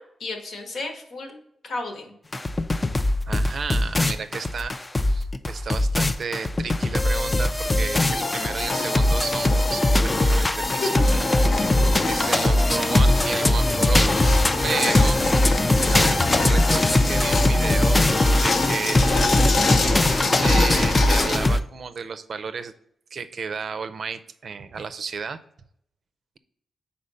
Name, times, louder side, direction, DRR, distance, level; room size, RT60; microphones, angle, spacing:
voice 1, 0.0-2.1 10.8-11.4 14.7-15.0, left 2 dB, 70° left, 4 dB, 1.3 m, -32 dB
sound 1, 2.3-21.6, left 1 dB, 20° left, 0.4 m, -21 dB
voice 2, 3.3-4.8 5.1-10.9 12.1-14.2 14.6-15.2 15.9-18.0 18.3-19.1 20.4-22.7 23.1-25.4, right 5 dB, 55° right, 11 dB, 0.4 m, -32 dB
sound 2, 7.9-21.4, left 3 dB, 55° left, 0.8 m, -27 dB
5.1 x 4.3 x 5.5 m, 0.72 s
wide cardioid pair, 115°, 0 cm